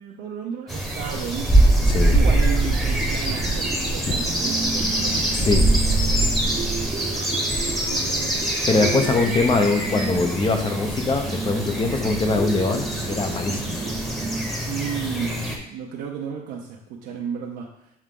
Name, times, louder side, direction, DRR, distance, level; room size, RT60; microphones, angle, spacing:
voice 1, 0.0-6.3 7.6-8.4 8.9-9.2 14.7-18.0, right 7 dB, 85° right, -1 dB, 0.7 m, -33 dB
sound 1, 0.7-15.6, right 1 dB, ahead, 1.2 m, -23 dB
sound 2, 1.6-14.5, right 4 dB, 25° right, 0.8 m, -33 dB
voice 2, 5.3-5.7 8.7-13.8, left 3 dB, 30° left, 5 dB, 0.8 m, -22 dB
7.1 x 3.5 x 3.8 m, 0.76 s
cardioid pair, 110°, 17 cm